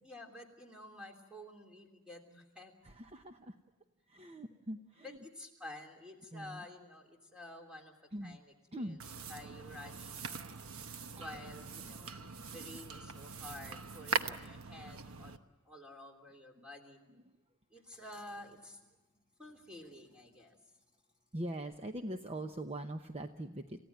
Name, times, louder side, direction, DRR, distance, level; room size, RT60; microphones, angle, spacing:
voice 1, 0.0-2.7 5.0-7.9 8.2-8.5 8.8-8.9 9.3-10.7 11.2-12.2 12.5-15.4 15.6-17.0 17.7-18.8 19.4-20.6, left 1 dB, 5° right, 1 dB, 3.2 m, -50 dB
voice 2, 2.8-3.6 4.1-5.2 6.3-6.7 8.1-8.4 8.7-9.0 11.1-11.4 11.8-12.0 16.6-16.7 17.1-17.3 21.3-23.8, right 1 dB, 30° right, 6 dB, 0.8 m, -43 dB
sound 1, 9.0-15.4, right 5 dB, 70° right, 1.1 m, -42 dB
29.0 x 16.0 x 9.2 m, 1.0 s
head